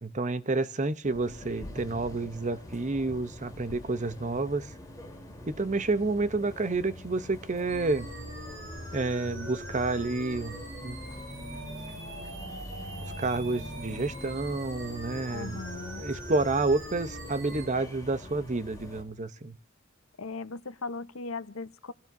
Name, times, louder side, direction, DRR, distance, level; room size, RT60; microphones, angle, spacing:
voice 1, 0.0-4.7 5.5-8.1 8.9-11.0 13.0-15.6 16.0-19.6, right 3 dB, 35° right, 0.8 m, -29 dB
sound 1, 1.0-19.0, left 1 dB, 15° left, 3.5 m, -45 dB
sound 2, 7.7-17.7, equal, 60° right, 5.3 m, -41 dB
voice 2, 15.3-16.1 20.2-21.9, left 3 dB, 80° left, 0.9 m, -38 dB
28.0 x 16.5 x 2.6 m
head